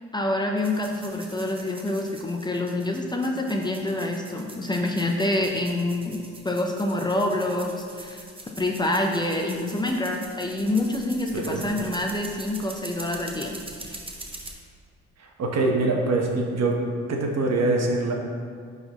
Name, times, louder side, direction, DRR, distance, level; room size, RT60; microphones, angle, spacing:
voice 1, 0.1-8.2 8.6-13.5 13.8-14.0, left 1 dB, 15° left, 1 dB, 0.6 m, -27 dB
sound 1, 0.6-14.5, right 2 dB, 20° right, 1.0 m, -43 dB
voice 2, 11.3-11.7 15.2-16.7 17.1-18.1, right 2 dB, 60° right, 1 dB, 1.1 m, -24 dB
11.0 x 4.0 x 3.0 m, 2.1 s
cardioid pair, 90°, 30 cm